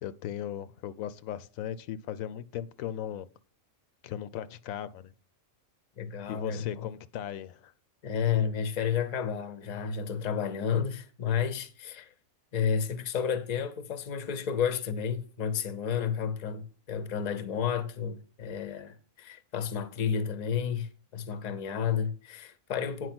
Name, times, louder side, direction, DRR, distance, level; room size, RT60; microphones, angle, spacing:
voice 1, 0.0-3.3 4.0-5.1 6.3-7.7, left 10 dB, 85° left, 1.0 m, -37 dB
voice 2, 6.0-6.9 8.0-12.1 12.5-23.1, left 7 dB, 40° left, 0.7 m, -31 dB
9.1 x 4.8 x 6.0 m
omnidirectional pair, 1.4 m